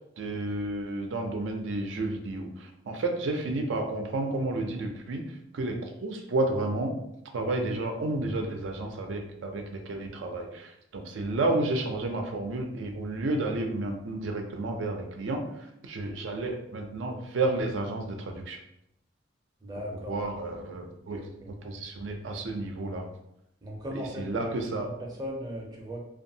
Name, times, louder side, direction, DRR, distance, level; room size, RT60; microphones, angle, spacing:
voice 1, 0.2-6.9 7.3-18.6 20.1-21.2 21.6-23.1 23.9-24.9, right 2 dB, 90° right, 3 dB, 0.4 m, -31 dB
voice 2, 19.6-20.2 21.1-21.5 23.6-26.0, equal, 20° right, -1 dB, 0.5 m, -38 dB
2.6 x 2.3 x 2.7 m, 0.80 s
head